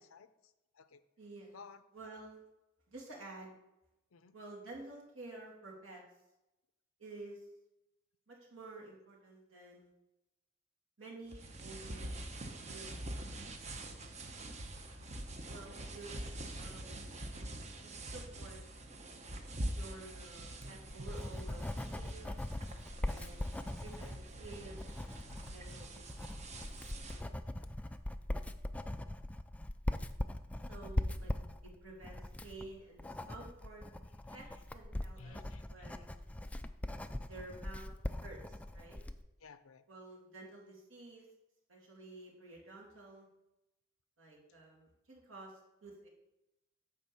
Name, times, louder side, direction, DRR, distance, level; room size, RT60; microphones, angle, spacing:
voice 1, 0.1-1.0 1.5-2.2 4.1-4.3 13.9-14.2 27.1-27.4 34.3-34.6 35.2-36.1 39.4-39.8, left 4 dB, 80° left, 12 dB, 0.6 m, -57 dB
voice 2, 1.2-1.6 1.9-2.4 2.9-3.5 4.3-6.0 7.0-7.4 8.3-9.9 11.0-12.2 12.7-13.1 15.5-16.2 16.5-17.0 17.7-18.6 19.7-22.3 23.0-25.1 25.5-26.5 30.7-31.3 31.6-33.8 34.3-34.5 34.7-36.2 37.2-37.9 38.2-39.0 39.9-41.3 41.7-43.3 44.2-45.5 45.8-46.1, right 2 dB, 70° right, -3 dB, 2.6 m, -51 dB
sound 1, 11.3-27.3, right 1 dB, 35° right, 0.8 m, -45 dB
Writing, 20.4-39.2, left 1 dB, 5° left, 0.3 m, -41 dB
9.5 x 3.6 x 7.0 m, 0.94 s
head